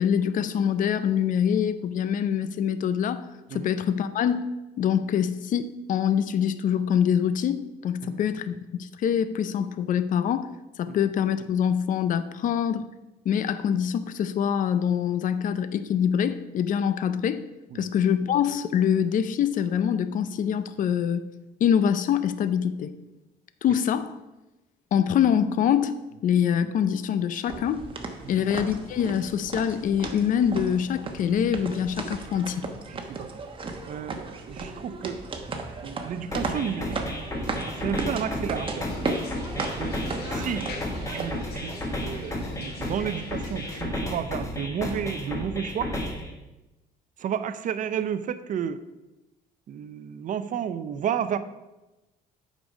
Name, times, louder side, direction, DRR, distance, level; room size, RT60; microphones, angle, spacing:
voice 1, 0.0-3.2 3.5-4.5 4.8-10.5 10.8-12.8 13.3-17.4 17.7-21.3 21.6-22.9 23.6-24.1 24.9-25.9 26.2-27.8 28.3-32.6, left 8 dB, 50° left, 13 dB, 0.5 m, -24 dB
sound 1, 27.5-41.6, right 3 dB, 30° right, 1.1 m, -35 dB
voice 2, 32.9-33.4 33.9-35.2 35.8-37.0 37.7-38.9 39.7-40.0 40.3-40.7 41.1-41.7 42.0-46.0 47.2-48.8 49.7-51.4, right 8 dB, 50° right, 13 dB, 0.6 m, -31 dB
sound 2, 36.3-46.3, left 1 dB, 20° left, 1.5 m, -33 dB
sound 3, 38.8-43.8, left 3 dB, 75° left, 1.4 m, -43 dB
7.9 x 5.2 x 5.2 m, 1.0 s
cardioid pair, 110°, 17 cm